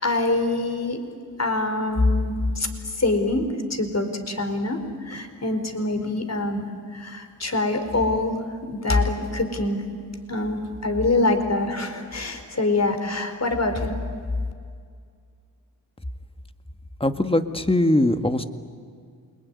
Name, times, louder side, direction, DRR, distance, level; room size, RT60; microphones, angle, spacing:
voice 1, 0.0-1.0 1.4-2.7 3.0-4.8 5.1-6.6 6.9-8.3 8.7-9.8 10.3-14.0, left 2 dB, 40° left, 7 dB, 4.6 m, -24 dB
voice 2, 17.0-18.4, left 1 dB, 15° left, 8 dB, 1.9 m, -21 dB
28.5 x 21.0 x 9.8 m, 2.1 s
supercardioid pair, 45°, 42 cm